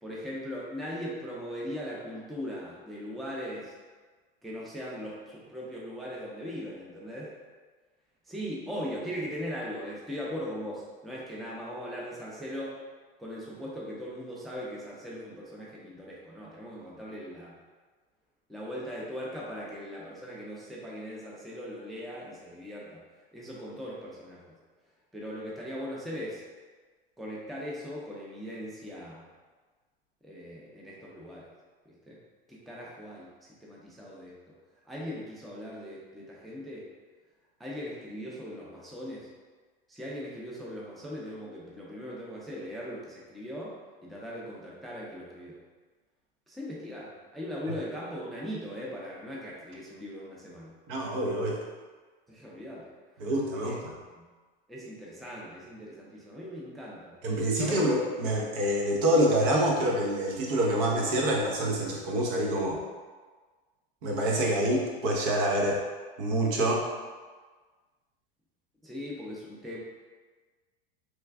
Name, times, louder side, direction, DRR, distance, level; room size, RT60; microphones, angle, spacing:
voice 1, 0.0-3.7 4.4-7.3 8.3-12.8 13.2-17.6 18.5-23.0 23.3-24.5 25.1-26.4 27.2-29.2 30.2-31.5 31.9-32.2 32.5-34.5 34.8-36.9 37.6-39.3 39.9-45.6 46.5-50.7 52.3-52.9 53.6-53.8 54.1-54.2 54.7-57.2 57.5-57.8 68.8-69.8, equal, ahead, -5 dB, 0.4 m, -39 dB
voice 2, 50.9-51.6 53.2-53.8 57.2-62.8 64.0-65.8 66.2-66.8, right 1 dB, 65° right, -1 dB, 0.9 m, -26 dB
3.2 x 2.3 x 3.4 m, 1.4 s
supercardioid pair, 115°, 29 cm